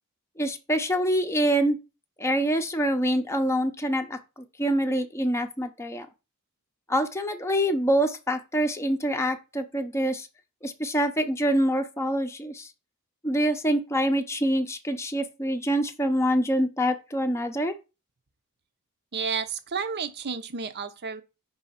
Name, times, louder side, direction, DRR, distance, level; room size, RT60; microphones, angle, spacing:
voice 1, 0.4-1.8 2.2-6.1 6.9-10.3 10.6-12.7 13.2-17.7, equal, 10° left, 0.7 m, -25 dB
voice 2, 19.1-21.2, right 5 dB, 50° right, 0.7 m, -31 dB
5.5 x 3.4 x 5.6 m
head